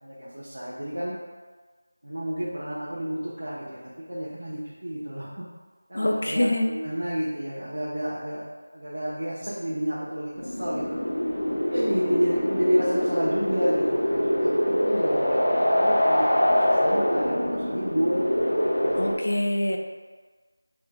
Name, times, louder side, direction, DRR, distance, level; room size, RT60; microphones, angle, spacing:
voice 1, 0.0-1.1 2.0-3.8 4.1-5.5 5.9-8.4 8.7-11.0 11.6-18.2 18.8-19.0, equal, 70° right, -8 dB, 0.7 m, -30 dB
voice 2, 5.9-6.7 18.9-19.8, left 1 dB, 50° left, 2 dB, 0.3 m, -24 dB
sound 1, 10.4-19.1, equal, 75° left, 0.8 m, -24 dB
3.3 x 2.8 x 2.2 m, 1.4 s
figure-of-eight pair, 180°, 0 cm